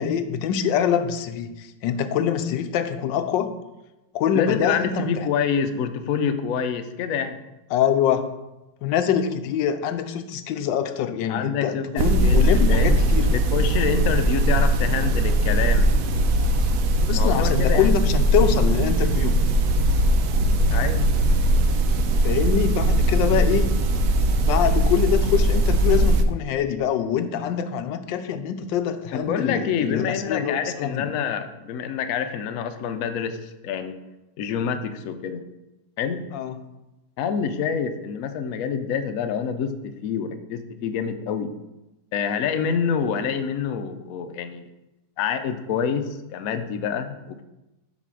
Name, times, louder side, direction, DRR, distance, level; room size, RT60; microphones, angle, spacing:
voice 1, 0.0-3.5 4.1-5.3 7.7-8.3 8.8-13.3 17.0-19.4 22.2-23.7 24.4-31.1 36.3-36.6, left 8 dB, 90° left, 10 dB, 1.3 m, -24 dB
voice 2, 4.3-7.4 11.3-13.0 13.3-15.9 17.1-17.9 20.7-21.1 29.1-33.9 34.4-35.4 36.0-36.2 37.2-39.7 40.0-41.5 42.1-44.6 45.2-47.4, left 7 dB, 65° left, 8 dB, 0.9 m, -27 dB
sound 1, 12.0-26.2, right 1 dB, 65° right, 0.9 m, -20 dB
7.9 x 4.2 x 6.1 m, 0.98 s
omnidirectional pair, 1.9 m